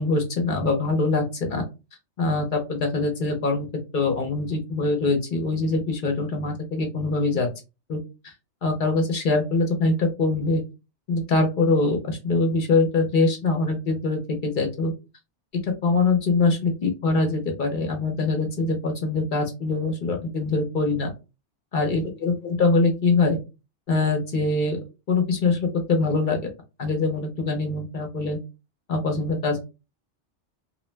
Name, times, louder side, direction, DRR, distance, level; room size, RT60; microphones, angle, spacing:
voice 1, 0.0-1.6 2.2-3.7 3.9-7.5 7.9-8.3 8.6-10.6 11.1-14.9 15.6-21.1 21.7-23.4 23.9-24.8 25.1-26.4 26.8-28.4 28.9-29.7, left 3 dB, 55° left, 3 dB, 0.7 m, -23 dB
2.5 x 2.0 x 3.1 m, 0.28 s
omnidirectional pair, 1.2 m